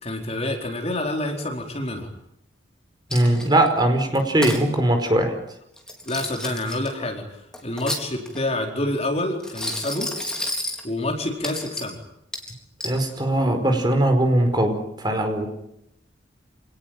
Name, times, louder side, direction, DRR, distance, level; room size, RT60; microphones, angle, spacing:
voice 1, 0.0-2.1 6.0-10.1 10.8-12.0, left 1 dB, 35° left, 2 dB, 4.6 m, -28 dB
Coin (dropping), 3.1-3.7 4.1-4.6 5.8-6.9 7.5-8.5 9.4-10.8 11.4-11.9 12.3-13.0, left 1 dB, 5° left, 4.1 m, -31 dB
voice 2, 3.1-5.3 12.8-15.5, right 1 dB, 25° right, 5 dB, 4.8 m, -20 dB
28.0 x 19.0 x 9.2 m, 0.78 s
head